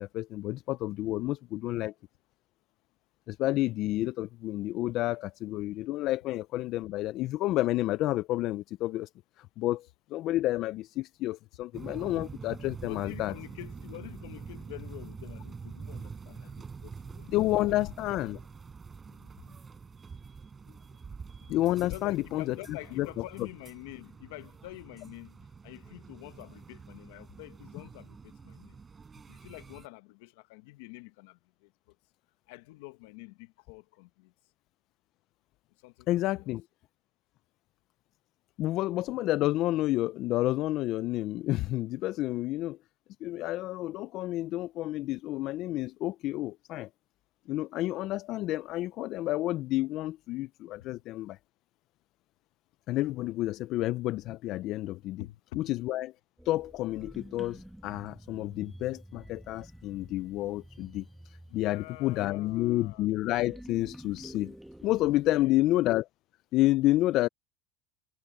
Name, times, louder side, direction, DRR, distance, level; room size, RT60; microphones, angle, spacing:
voice 1, 0.0-1.9 3.3-9.1 9.4-13.3 17.3-18.4 21.5-22.5 23.0-23.1 36.1-36.6 38.6-42.8 43.2-46.9 47.5-51.4 52.9-55.2 55.6-56.1 56.5-64.5 64.8-66.1 66.5-67.3, left 16 dB, 50° left, 0.4 m, -30 dB
sound 1, 11.7-29.9, right 5 dB, 20° right, 4.7 m, -46 dB
voice 2, 12.8-17.3 17.7-17.8 19.1-19.6 21.9-25.4 25.6-28.8 29.3-31.7 32.5-34.3 35.8-36.5 55.2-55.7 61.5-63.1 65.2-65.7, left 20 dB, 75° left, 1.3 m, -47 dB
sound 2, 56.4-65.5, right 1 dB, 5° right, 1.4 m, -50 dB
supercardioid pair, 125°, 0 cm